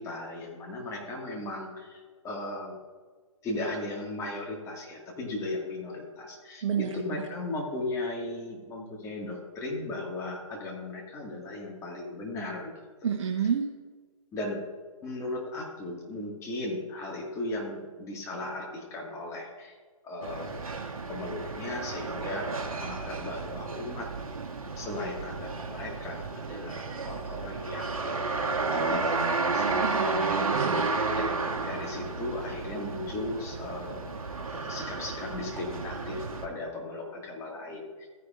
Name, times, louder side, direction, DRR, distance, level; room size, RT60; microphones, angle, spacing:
voice 1, 0.0-2.8 3.4-12.7 14.3-14.6 15.0-19.7 20.0-20.6 21.1-22.5 22.8-24.1 24.8-30.2 31.1-34.0 34.4-38.1, left 2 dB, 15° left, -1 dB, 1.9 m, -37 dB
voice 2, 6.6-7.0 13.0-13.7 29.8-30.9, right 7 dB, 55° right, 0 dB, 1.2 m, -29 dB
sound 1, 20.2-36.5, right 3 dB, 75° right, 1.4 m, -32 dB
14.5 x 9.9 x 2.5 m, 1.5 s
figure-of-eight pair, 135°, 18 cm